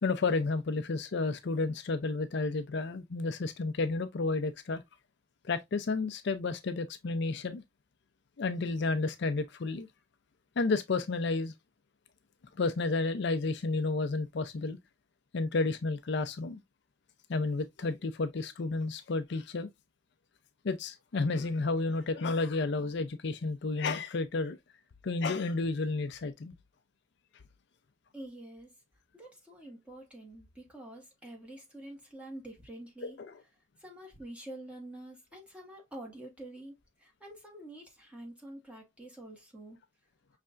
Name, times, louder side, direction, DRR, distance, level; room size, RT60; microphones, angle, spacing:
voice 1, 0.0-4.8 5.4-7.6 8.4-9.9 10.6-11.5 12.6-14.8 15.3-16.6 17.3-19.7 20.6-24.6 25.0-26.5 33.0-33.1, left 3 dB, 60° left, 0.5 m, -31 dB
voice 2, 28.1-28.7 29.1-33.2 33.8-39.8, right 1 dB, 5° right, 1.5 m, -47 dB
5.5 x 3.3 x 2.4 m
head